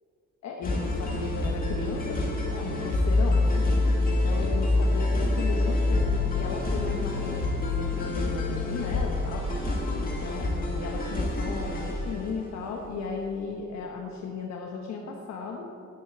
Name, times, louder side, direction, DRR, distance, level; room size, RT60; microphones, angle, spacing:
voice 1, 0.4-3.7 4.1-9.4 10.0-15.7, left 4 dB, 60° left, 0 dB, 1.2 m, -36 dB
sound 1, 0.6-12.4, left 2 dB, 30° left, 2.0 m, -26 dB
10.0 x 8.6 x 8.8 m, 2.6 s
cardioid pair, 175°, 30 cm